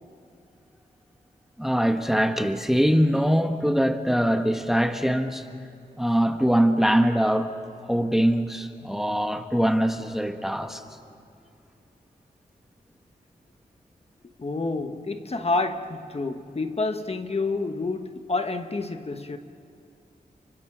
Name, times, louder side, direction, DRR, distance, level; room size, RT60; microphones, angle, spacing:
voice 1, 1.6-5.5 6.0-7.5 7.9-10.8, equal, ahead, 1.4 m, -22 dB
voice 2, 14.4-19.4, left 3 dB, 40° left, 1.3 m, -28 dB
30.0 x 29.5 x 6.2 m
wide cardioid pair, 85°, 16 cm